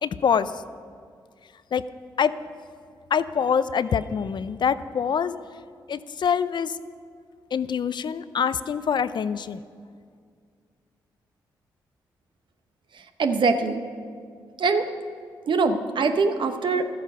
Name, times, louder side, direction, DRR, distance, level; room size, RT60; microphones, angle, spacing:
voice 1, 0.0-0.5 1.7-1.8 2.2-2.3 3.1-5.3 5.9-6.7 7.5-9.6, left 7 dB, 55° left, 15 dB, 0.5 m, -25 dB
voice 2, 13.2-13.8 14.6-14.9 15.5-16.9, right 4 dB, 60° right, 7 dB, 0.9 m, -22 dB
13.0 x 8.5 x 5.6 m, 2.1 s
supercardioid pair, 45°, 9 cm